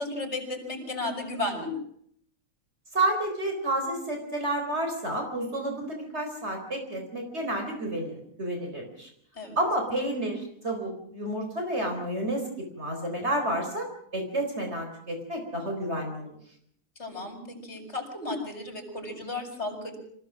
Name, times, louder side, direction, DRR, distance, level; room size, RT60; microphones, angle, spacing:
voice 1, 0.0-1.8 9.3-9.6 17.0-20.0, left 2 dB, 45° left, 4 dB, 6.1 m, -34 dB
voice 2, 2.9-9.1 9.6-16.4, right 1 dB, 45° right, 2 dB, 4.5 m, -30 dB
26.5 x 16.0 x 7.4 m, 0.68 s
omnidirectional pair, 1.6 m